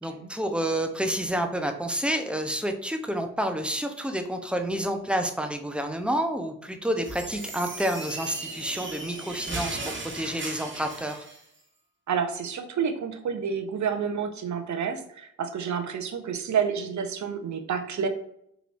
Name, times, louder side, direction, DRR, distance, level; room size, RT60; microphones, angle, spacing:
voice 1, 0.0-9.8 10.1-11.3, right 1 dB, 5° right, 5 dB, 0.7 m, -29 dB
sound 1, 7.0-11.4, right 2 dB, 30° right, 1.3 m, -37 dB
voice 2, 12.1-18.1, right 7 dB, 45° right, 7 dB, 0.8 m, -29 dB
4.8 x 3.0 x 2.6 m, 0.72 s
hypercardioid pair, 40°, 39 cm